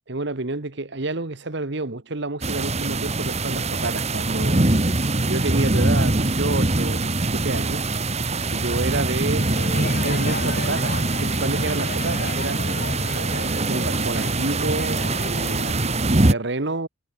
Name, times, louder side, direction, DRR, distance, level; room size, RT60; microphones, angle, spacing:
voice 1, 0.1-4.7 5.3-7.9 8.5-12.7 13.3-16.9, right 2 dB, 60° right, 1.4 m, -29 dB
sound 1, 2.4-16.3, right 2 dB, 35° right, 1.8 m, -23 dB
Crowd, 9.4-15.7, left 3 dB, 50° left, 6.4 m, -35 dB
head